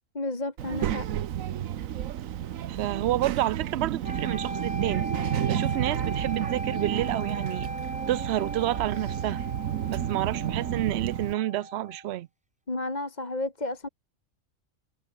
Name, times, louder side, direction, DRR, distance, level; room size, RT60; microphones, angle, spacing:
voice 1, 0.1-1.1 12.7-13.9, left 2 dB, 30° left, 2.5 m, -32 dB
Child speech kid speaking, 0.6-11.3, right 11 dB, 85° right, 1.2 m, -31 dB
voice 2, 2.7-5.1 5.5-7.7 8.1-9.4 9.9-12.3, right 14 dB, 65° right, 0.7 m, -29 dB
sound 1, 4.0-12.1, right 1 dB, 5° right, 0.9 m, -38 dB
omnidirectional pair, 1.4 m